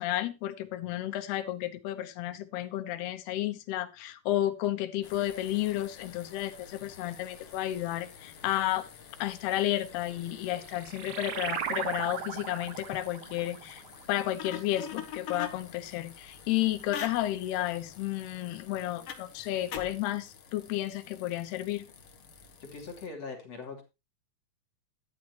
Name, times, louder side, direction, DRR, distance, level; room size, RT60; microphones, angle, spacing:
voice 1, 0.0-8.9 9.2-13.8 14.1-21.9, left 14 dB, 80° left, 10 dB, 3.0 m, -32 dB
sound 1, 5.0-23.1, left 7 dB, 60° left, 1.6 m, -47 dB
sound 2, 10.2-15.2, right 9 dB, 65° right, 1.9 m, -38 dB
voice 2, 22.6-23.8, left 4 dB, 40° left, 1 dB, 3.6 m, -41 dB
12.0 x 11.5 x 3.0 m, 0.26 s
omnidirectional pair, 4.7 m